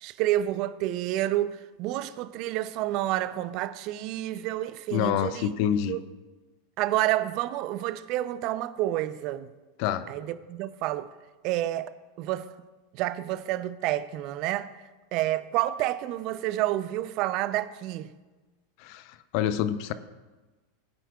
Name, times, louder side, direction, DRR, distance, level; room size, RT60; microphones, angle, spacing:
voice 1, 0.0-5.5 5.9-6.0 6.8-9.5 10.1-11.1 11.4-12.5 12.9-14.7 15.1-18.1, right 14 dB, 50° right, 0.5 m, -29 dB
voice 2, 4.9-6.0 9.8-10.1 18.8-19.9, left 10 dB, 55° left, 0.7 m, -27 dB
18.0 x 9.0 x 2.4 m
hypercardioid pair, 90°, 0 cm